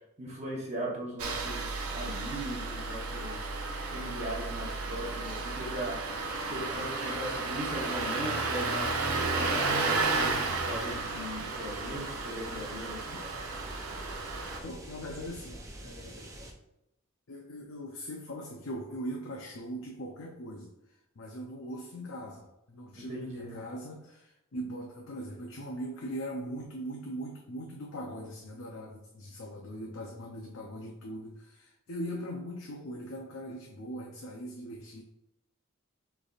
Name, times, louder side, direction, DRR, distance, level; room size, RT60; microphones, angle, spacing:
voice 1, 0.2-13.2 23.0-23.6, right 1 dB, 30° right, -4 dB, 1.0 m, -39 dB
Engine starting, 1.2-14.6, right 3 dB, 85° right, 0.7 m, -33 dB
sound 1, 8.7-16.5, right 1 dB, 15° right, 0.5 m, -46 dB
voice 2, 14.6-16.3 17.3-35.0, equal, 65° left, 0 dB, 0.6 m, -40 dB
6.4 x 3.4 x 2.4 m, 0.88 s
head